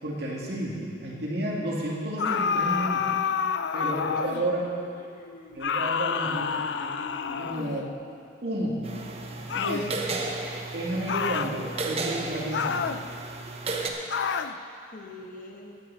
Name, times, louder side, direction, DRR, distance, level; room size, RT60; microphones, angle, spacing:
voice 1, 0.0-3.1 3.7-4.7 5.5-7.0 7.3-7.9 8.4-8.9 9.3-10.0 10.7-12.9, right 1 dB, 60° right, -4 dB, 2.5 m, -31 dB
sound 1, 2.2-4.5 5.6-7.9 9.5-9.9 11.1-11.5 12.5-13.0 14.1-14.6, left 6 dB, 75° left, 0.4 m, -28 dB
voice 2, 3.8-4.5 5.0-5.8 14.9-15.8, left 1 dB, 45° left, 1 dB, 1.2 m, -45 dB
sound 2, 8.8-13.9, right 3 dB, 35° right, 0.9 m, -34 dB
15.0 x 11.0 x 4.2 m, 2.4 s
head